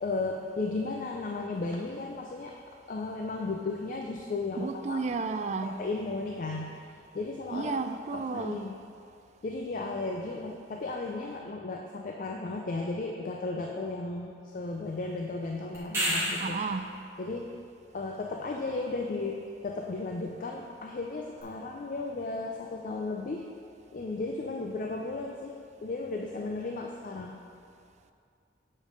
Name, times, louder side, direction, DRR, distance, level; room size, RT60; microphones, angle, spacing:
voice 1, 0.0-2.6 2.9-5.0 5.6-6.9 7.1-7.7 8.1-8.8 9.4-16.6 17.2-17.6 17.9-23.5 23.9-27.4, left 3 dB, 45° left, 0.4 m, -35 dB
voice 2, 4.6-5.8 7.5-8.6 16.4-16.9, right 4 dB, 40° right, 0.3 m, -32 dB
sound 1, 15.7-16.7 21.4-21.5, equal, 15° right, 1.9 m, -29 dB
7.4 x 5.1 x 5.1 m
head